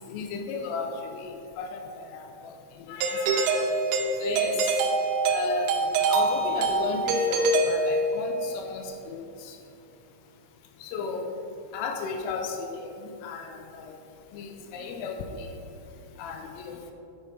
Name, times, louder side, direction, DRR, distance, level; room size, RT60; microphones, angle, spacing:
voice 1, 0.0-10.0 10.8-16.9, left 4 dB, 85° left, 4 dB, 3.1 m, -35 dB
Doorbell, 3.0-8.4, right 3 dB, 85° right, 3.1 m, -25 dB
9.7 x 5.7 x 3.6 m, 2.8 s
omnidirectional pair, 5.9 m